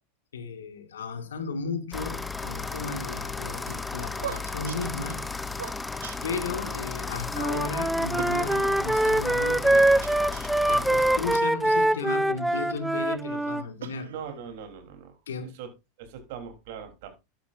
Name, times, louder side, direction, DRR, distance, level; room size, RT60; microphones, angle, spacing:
voice 1, 0.3-5.2 6.2-9.9 10.7-14.1 15.3-15.6, left 4 dB, 80° left, 1.9 m, -35 dB
sound 1, 1.9-11.4, left 4 dB, 10° left, 0.9 m, -34 dB
sound 2, 3.7-6.8 7.1-7.2 7.5-7.7 8.2-9.2 9.7-10.9 11.6-12.8 13.3-14.5, right 9 dB, 80° right, 1.2 m, -42 dB
Wind instrument woodwind instrument, 7.3-13.6, right 1 dB, 5° right, 0.4 m, -24 dB
voice 2, 14.1-15.2 15.6-15.7 16.0-17.1, right 7 dB, 65° right, 3.5 m, -40 dB
12.0 x 10.0 x 2.6 m
hypercardioid pair, 95°, 0 cm